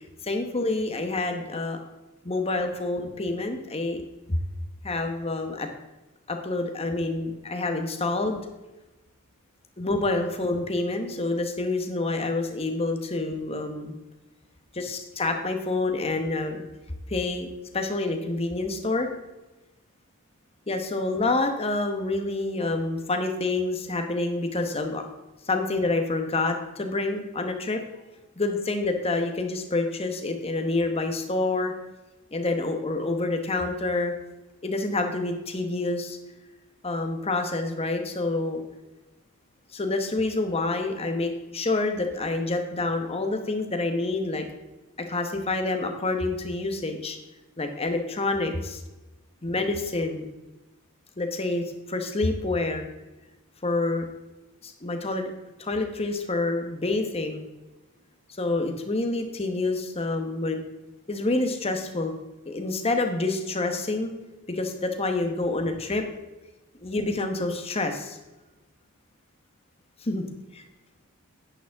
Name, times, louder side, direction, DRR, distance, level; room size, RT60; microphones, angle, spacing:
voice 1, 0.2-1.8 2.2-4.0 4.3-4.4 4.8-5.7 6.3-8.4 9.8-13.9 14.8-16.7 17.1-19.1 20.7-25.0 25.5-27.8 28.4-31.7 32.3-34.1 34.6-36.2 36.8-38.6 39.7-44.5 45.1-47.2 47.6-48.8 49.4-50.3 51.2-52.9 53.6-54.1 54.6-55.3 55.6-57.5 58.4-60.6 61.1-62.1 62.5-64.1 64.5-66.0 66.8-68.2 70.0-70.2 70.5-70.6, left 2 dB, 25° left, 5 dB, 1.1 m, -27 dB
10.5 x 9.2 x 3.6 m, 1.1 s
head